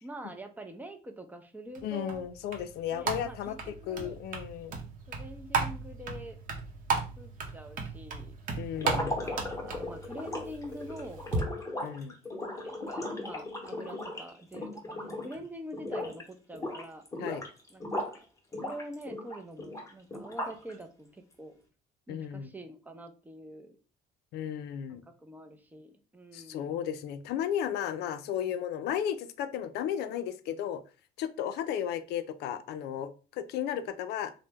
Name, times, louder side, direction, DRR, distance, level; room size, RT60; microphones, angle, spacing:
voice 1, 0.0-2.2 2.9-4.2 5.1-6.4 6.9-8.4 9.0-11.2 12.4-17.0 17.7-18.2 18.6-21.6 22.1-23.8 24.9-26.8, right 1 dB, 10° right, 6 dB, 0.5 m, -45 dB
sound 1, 1.7-11.4, right 4 dB, 50° right, 0.7 m, -36 dB
voice 2, 1.8-3.6 3.9-4.8 8.6-9.2 11.8-12.1 17.2-17.4 22.1-22.5 24.3-25.0 26.3-30.8 31.2-34.3, left 9 dB, 80° left, 12 dB, 0.4 m, -34 dB
sound 2, 8.8-15.4 15.7-16.2 16.5-18.2 18.5-20.7, left 1 dB, 20° left, 0.8 m, -37 dB
2.9 x 2.0 x 3.4 m, 0.36 s
cardioid pair, 110°, 17 cm